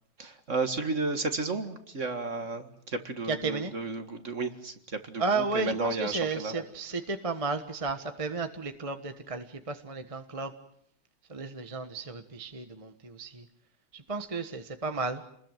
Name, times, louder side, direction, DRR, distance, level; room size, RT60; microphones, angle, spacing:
voice 1, 0.2-6.5, right 3 dB, 35° right, 8 dB, 2.0 m, -33 dB
voice 2, 3.3-3.7 5.2-10.5 11.3-13.4 13.9-15.2, right 4 dB, 20° right, 8 dB, 1.2 m, -33 dB
28.5 x 21.0 x 9.1 m, 0.71 s
omnidirectional pair, 2.3 m